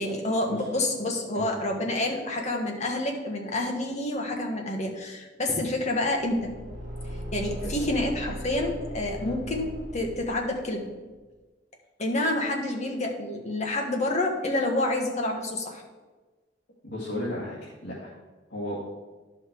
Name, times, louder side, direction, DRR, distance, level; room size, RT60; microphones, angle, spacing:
voice 1, 0.0-6.5 6.8-6.9 7.3-9.7 9.9-10.8 12.0-15.8, left 1 dB, 40° left, 1 dB, 1.4 m, -28 dB
Car / Engine, 6.2-10.7, equal, 40° right, 1.6 m, -38 dB
voice 2, 16.8-18.1 18.5-18.8, left 1 dB, 70° left, -7 dB, 2.0 m, -34 dB
11.0 x 5.8 x 4.6 m, 1.2 s
head